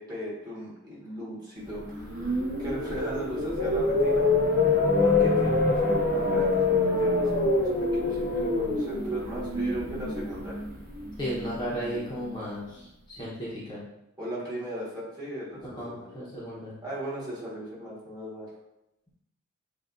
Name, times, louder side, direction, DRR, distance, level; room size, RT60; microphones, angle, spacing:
voice 1, 0.0-4.3 5.0-10.6 14.2-16.1 16.8-18.5, equal, 20° right, -8 dB, 1.6 m, -38 dB
sound 1, 1.8-11.9, left 3 dB, 45° right, 1.2 m, -25 dB
voice 2, 11.2-13.8 15.6-16.7, equal, 20° left, -7 dB, 1.0 m, -35 dB
7.4 x 2.6 x 2.6 m, 0.87 s
head